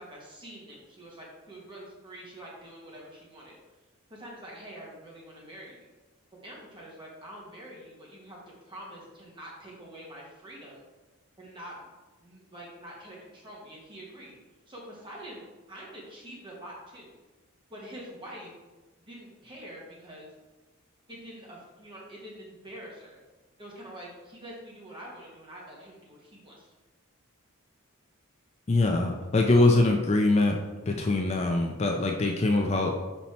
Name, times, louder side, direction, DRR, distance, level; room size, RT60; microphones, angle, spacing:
voice 1, 0.0-3.6 4.1-5.8 6.4-10.8 11.4-11.9 12.2-14.4 14.7-17.2 17.7-18.5 19.1-20.3 21.1-23.2 23.6-26.7, right 1 dB, 25° right, -4 dB, 1.4 m, -45 dB
voice 2, 28.7-30.6 30.9-33.0, left 2 dB, 30° left, 2 dB, 0.4 m, -23 dB
5.6 x 4.2 x 4.3 m, 1.2 s
head